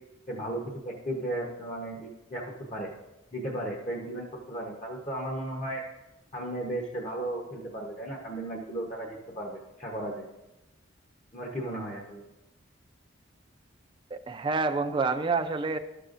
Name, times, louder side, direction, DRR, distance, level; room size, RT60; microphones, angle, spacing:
voice 1, 0.3-2.9 3.3-5.8 6.3-10.3 11.3-12.2, right 1 dB, 35° left, -1 dB, 0.9 m, -35 dB
voice 2, 14.1-15.8, right 4 dB, 25° right, 6 dB, 0.3 m, -28 dB
12.5 x 6.7 x 2.5 m, 0.98 s
head